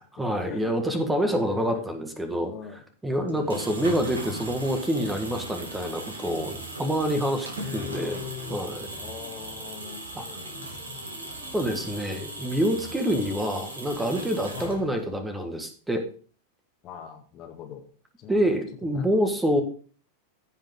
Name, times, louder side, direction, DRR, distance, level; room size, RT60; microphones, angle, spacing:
voice 1, 0.0-2.5 3.0-8.2 8.5-8.9 10.1-10.2 11.5-16.0 18.3-19.6, equal, 10° right, 6 dB, 1.6 m, -27 dB
voice 2, 1.3-1.9 2.5-3.6 7.5-8.6 8.9-11.0 13.1-13.4 14.5-14.9 16.8-17.9 18.2-18.5 18.8-19.1, left 9 dB, 35° left, 5 dB, 1.7 m, -41 dB
sound 1, 3.3-15.1, right 1 dB, 70° right, 2.6 m, -38 dB
sound 2, 3.4-13.3, right 3 dB, 40° right, 3.4 m, -48 dB
15.5 x 5.7 x 3.7 m, 0.41 s
figure-of-eight pair, 90°, 0 cm